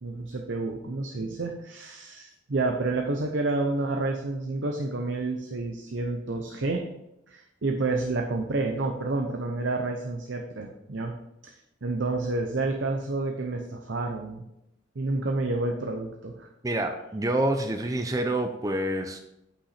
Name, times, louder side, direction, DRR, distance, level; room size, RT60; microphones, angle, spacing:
voice 1, 0.0-6.8 7.3-11.1 11.4-14.4 15.0-16.5, right 2 dB, 70° right, 3 dB, 0.7 m, -29 dB
voice 2, 16.6-19.2, right 1 dB, 20° right, 5 dB, 0.5 m, -27 dB
8.6 x 5.7 x 4.2 m, 0.87 s
head